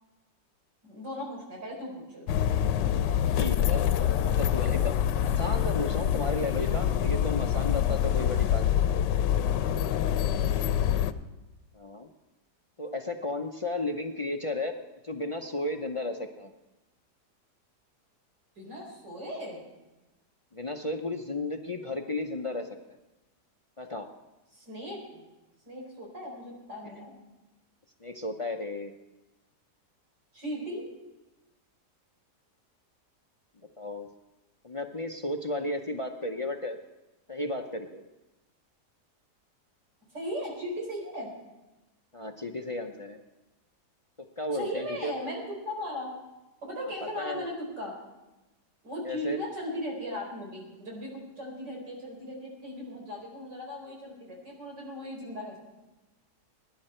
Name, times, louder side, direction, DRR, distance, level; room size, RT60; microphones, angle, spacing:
voice 1, 0.8-2.3 10.3-10.7 18.6-19.7 24.5-25.2 25.6-27.1 30.3-30.9 40.1-41.3 44.5-46.1 46.6-48.0 48.8-55.6, equal, 90° right, -1 dB, 5.0 m, -37 dB
sound 1, 2.3-11.1, left 10 dB, 85° left, 1.3 m, -26 dB
voice 2, 3.4-3.9 4.3-4.9 5.2-8.8 11.7-12.1 12.8-14.7 15.0-16.5 20.5-22.8 23.8-24.1 28.0-28.9 33.8-34.1 34.6-36.8 37.3-38.0 42.1-43.2 44.2-45.3 47.0-47.5 49.0-49.4, left 2 dB, 50° left, 5 dB, 0.4 m, -34 dB
22.5 x 10.5 x 4.4 m, 1.0 s
omnidirectional pair, 1.8 m